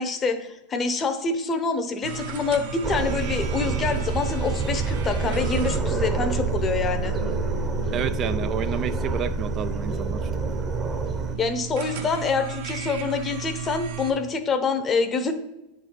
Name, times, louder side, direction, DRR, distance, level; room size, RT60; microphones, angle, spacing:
voice 1, 0.0-7.2 11.4-15.3, left 4 dB, 25° left, 8 dB, 0.9 m, -26 dB
sound 1, 2.0-14.1, right 7 dB, 70° right, 1.1 m, -36 dB
sound 2, 2.8-11.3, right 4 dB, 20° right, 0.8 m, -27 dB
sound 3, 7.9-10.9, left 3 dB, 70° left, 0.9 m, -45 dB
voice 2, 7.9-10.3, right 8 dB, 35° right, 12 dB, 0.3 m, -30 dB
9.8 x 4.0 x 4.6 m, 0.96 s
hypercardioid pair, 115°, 0 cm